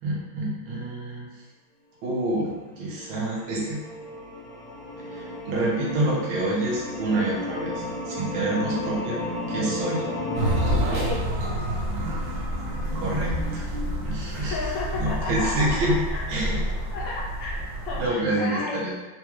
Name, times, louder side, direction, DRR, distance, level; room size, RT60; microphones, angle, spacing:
voice 1, 0.0-1.3 2.0-3.8 5.1-9.2 9.5-10.0 12.9-13.6 14.0-14.6 14.9-16.0 16.3-16.6 17.9-18.9, right 1 dB, 85° right, -4 dB, 1.6 m, -27 dB
sound 1, 2.4-10.8, left 2 dB, 90° left, 1.6 m, -33 dB
sound 2, 10.4-18.1, equal, 65° right, 1.2 m, -28 dB
voice 2, 10.9-11.4 14.4-16.2 16.5-16.6 16.9-18.9, left 3 dB, 70° left, -4 dB, 1.5 m, -33 dB
4.1 x 2.3 x 3.0 m, 1.2 s
omnidirectional pair, 2.2 m